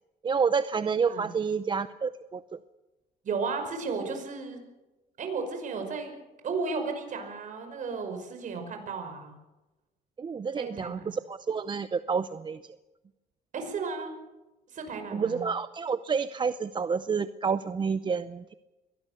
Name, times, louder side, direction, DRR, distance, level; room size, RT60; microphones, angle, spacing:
voice 1, 0.2-2.6 10.2-12.6 15.1-18.5, right 5 dB, 30° right, 13 dB, 0.6 m, -29 dB
voice 2, 3.2-4.6 5.2-6.2 6.4-9.3 10.6-11.1 13.5-14.1 14.7-15.4, right 4 dB, 50° right, 6 dB, 5.6 m, -34 dB
23.0 x 18.0 x 6.7 m, 1.1 s
cardioid pair, 110°, 17 cm